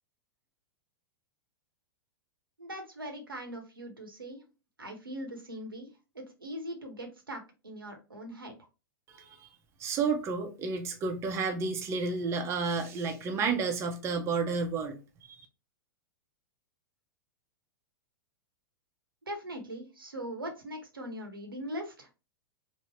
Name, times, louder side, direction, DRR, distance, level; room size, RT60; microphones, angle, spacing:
voice 1, 2.6-4.4 4.8-5.9 6.1-8.5 19.3-22.1, equal, 80° right, 0.8 m, -41 dB
voice 2, 9.1-9.5 9.8-15.0 15.3-15.4, right 4 dB, 25° right, 0.6 m, -31 dB
3.5 x 2.0 x 3.1 m
figure-of-eight pair, 100°, 11 cm